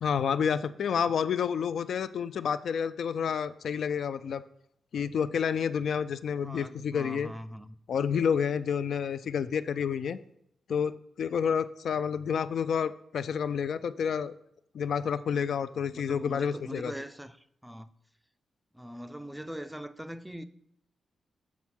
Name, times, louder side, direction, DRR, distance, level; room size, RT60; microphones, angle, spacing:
voice 1, 0.0-4.4 4.9-7.3 7.9-10.2 10.7-14.3 14.7-16.9, left 7 dB, 65° left, 0.3 m, -29 dB
voice 2, 6.4-7.8 15.9-17.9 18.7-20.4, equal, 5° right, 0.4 m, -41 dB
7.2 x 4.5 x 6.1 m
wide cardioid pair, 145°, 0 cm